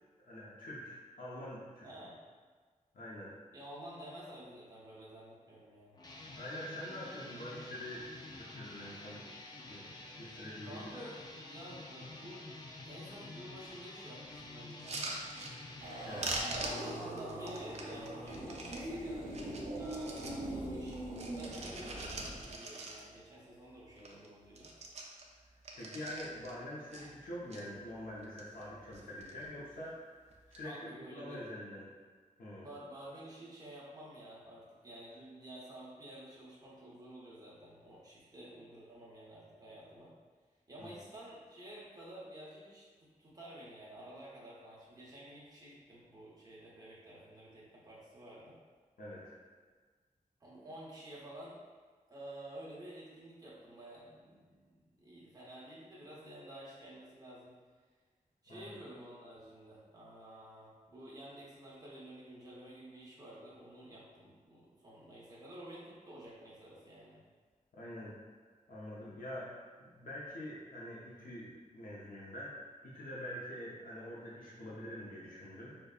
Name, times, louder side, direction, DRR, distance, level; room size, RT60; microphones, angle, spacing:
voice 1, 0.2-1.9 2.9-3.3 6.4-8.1 8.4-9.3 9.6-9.9 10.2-10.9 16.0-16.4 24.0-24.2 25.7-31.9 32.4-32.7 40.8-40.9 49.0-49.4 58.5-58.8 67.7-68.1 68.7-72.6 72.8-75.8, left 1 dB, 85° left, -6 dB, 0.7 m, -45 dB
voice 2, 1.8-2.2 3.5-6.0 10.6-12.5 12.9-15.2 16.6-19.4 19.7-24.7 30.6-31.4 32.6-40.1 40.7-48.6 50.4-51.6 52.1-57.5 58.4-67.2, right 1 dB, 25° right, -7 dB, 0.7 m, -51 dB
sound 1, 5.9-16.3, left 2 dB, 30° left, 0.4 m, -49 dB
sound 2, 14.7-15.9 16.2-18.8 19.3-20.4 20.8-23.3 23.6-23.7 24.0-24.3 24.5-26.5 26.9-27.6 28.1-28.7 28.9-29.5 30.3-30.6, right 2 dB, 55° right, 0.4 m, -43 dB
sound 3, 15.8-22.6, right 1 dB, 70° right, 0.8 m, -42 dB
5.0 x 2.2 x 2.3 m, 1.5 s
wide cardioid pair, 150°, 14 cm